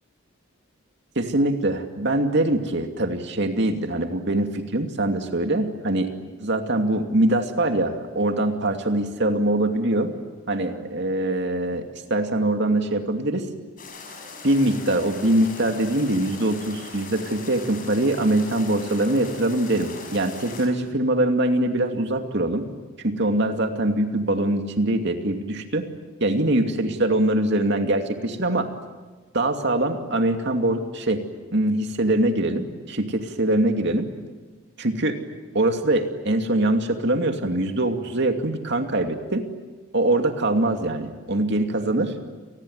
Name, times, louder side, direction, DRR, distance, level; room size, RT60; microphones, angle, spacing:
voice 1, 1.2-6.1 6.4-10.1 10.5-11.8 12.1-13.5 14.4-22.7 23.0-25.9 26.2-28.7 29.3-31.2 31.5-34.1 34.8-35.2 35.5-39.5 39.9-42.1, right 1 dB, 60° right, 5 dB, 2.6 m, -23 dB
sound 1, 13.8-20.7, left 4 dB, 45° left, 6.2 m, -40 dB
28.5 x 20.0 x 9.5 m, 1.3 s
head